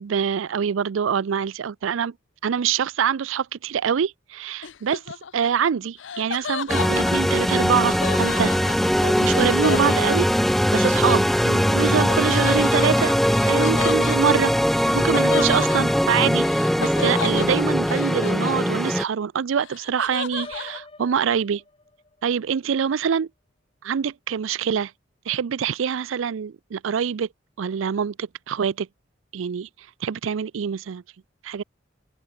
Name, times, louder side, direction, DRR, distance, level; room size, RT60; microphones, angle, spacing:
voice 1, 0.0-2.1 2.4-8.5 9.0-13.1 13.4-14.5 14.9-16.5 16.8-21.6 22.2-23.3 23.8-24.9 25.3-27.3 27.6-28.9 29.3-31.0 31.4-31.6, right 7 dB, 85° right, 0.4 m, -25 dB
Laughter, 4.6-10.7 12.1-19.1 19.4-20.8, left 6 dB, 70° left, 0.6 m, -34 dB
sound 1, 6.7-19.0, equal, ahead, 0.4 m, -21 dB
Piano, 20.4-22.3, left 2 dB, 30° left, 2.5 m, -44 dB
open air
head